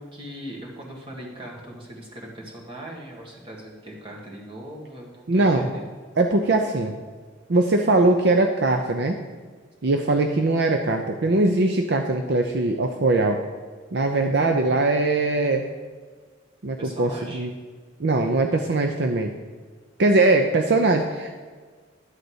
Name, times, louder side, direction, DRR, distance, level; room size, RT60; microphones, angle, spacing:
voice 1, 0.0-5.8 9.8-9.9 16.8-17.4, equal, 30° right, -2 dB, 1.9 m, -40 dB
voice 2, 5.3-5.7 6.2-7.0 7.5-9.2 9.8-13.4 13.9-15.6 16.6-17.5 18.0-19.3 20.0-21.3, right 2 dB, 60° right, 4 dB, 0.6 m, -21 dB
11.5 x 4.0 x 7.9 m, 1.5 s
head